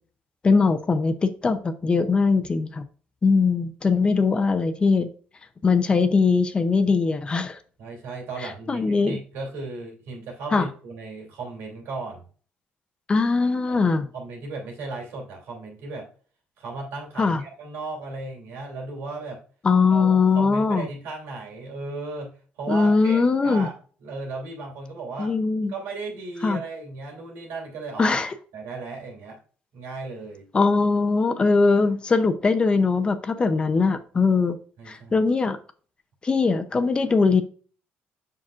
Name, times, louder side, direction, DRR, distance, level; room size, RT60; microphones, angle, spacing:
voice 1, 0.4-2.8 3.2-5.1 5.6-7.6 8.7-9.2 10.5-10.7 13.1-14.1 17.2-17.4 19.6-20.9 22.7-23.7 25.2-25.7 26.4-26.6 28.0-28.3 30.5-34.6 34.9-35.6 36.2-37.4, left 4 dB, 25° left, 0.7 m, -21 dB
voice 2, 7.8-12.3 13.7-13.8 14.1-16.1 16.6-19.4 19.9-22.3 22.6-23.7 24.0-25.3 25.7-28.2 28.5-29.4 29.7-30.5 34.8-35.2, right 3 dB, 90° right, 2.9 m, -36 dB
7.3 x 5.9 x 2.5 m
cardioid pair, 130°, 4 cm